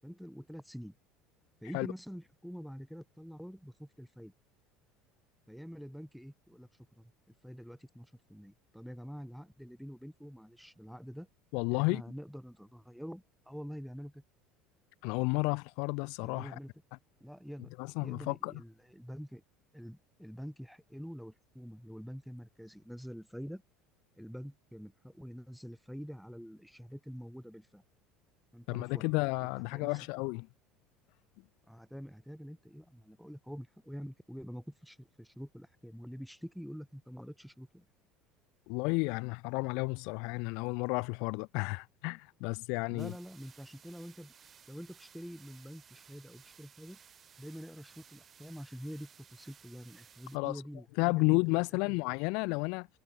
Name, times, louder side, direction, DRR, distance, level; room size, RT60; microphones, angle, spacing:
voice 1, 0.0-0.9 1.6-4.3 5.5-6.7 7.0-7.1 7.4-11.3 11.7-14.2 16.2-16.7 17.2-17.7 18.0-19.4 19.7-23.6 24.2-27.8 28.5-29.1 29.4-29.9 31.7-37.8 42.9-44.3 44.7-47.0 47.4-51.4 51.8-52.0, equal, ahead, 8.0 m, -46 dB
voice 2, 11.5-12.0 15.0-16.6 17.8-18.6 28.7-30.5 38.7-43.1 50.3-50.6 51.0-52.9, left 31 dB, 70° left, 1.2 m, -32 dB
sound 1, 43.0-50.4, right 7 dB, 40° right, 3.2 m, -59 dB
hypercardioid pair, 80°, 0 cm